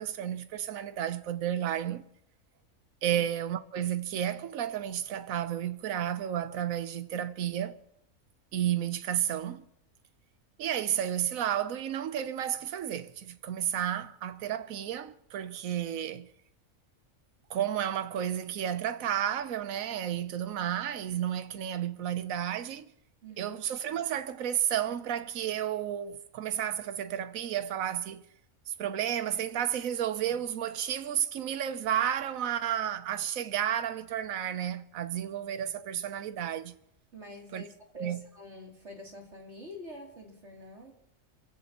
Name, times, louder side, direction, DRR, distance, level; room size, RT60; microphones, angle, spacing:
voice 1, 0.0-2.0 3.0-7.8 8.5-9.7 10.6-16.3 17.5-22.9 23.4-28.2 28.7-36.7 37.5-37.7 38.0-38.3, right 10 dB, 80° right, 1.2 m, -32 dB
voice 2, 23.2-23.6 37.1-40.9, left 1 dB, 55° right, 3.4 m, -47 dB
28.0 x 16.5 x 3.0 m
omnidirectional pair, 1.4 m